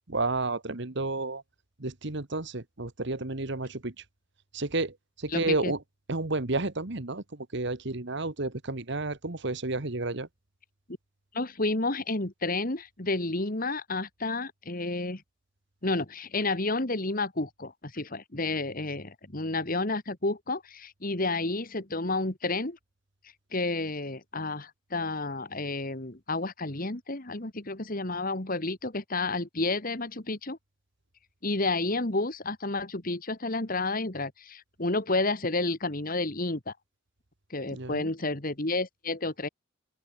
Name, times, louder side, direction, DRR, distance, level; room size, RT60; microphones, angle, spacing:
voice 1, 0.0-1.4 1.8-3.9 4.5-5.8 6.1-10.3 37.7-38.1, right 2 dB, 60° right, 1.6 m, -31 dB
voice 2, 5.3-5.7 11.3-15.2 15.8-22.8 23.5-30.6 31.4-36.7 37.5-39.5, left 2 dB, 45° left, 2.2 m, -30 dB
open air
head